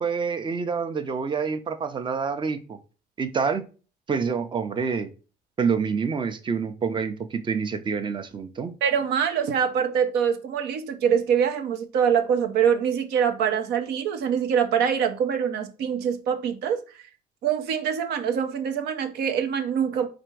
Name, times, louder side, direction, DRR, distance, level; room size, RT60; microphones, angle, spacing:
voice 1, 0.0-2.8 3.2-3.6 4.1-5.1 5.6-8.7, right 5 dB, 30° right, 0.6 m, -27 dB
voice 2, 8.8-16.8 17.4-20.1, right 8 dB, 75° right, 0.8 m, -24 dB
4.3 x 2.6 x 4.5 m
cardioid pair, 110°, 17 cm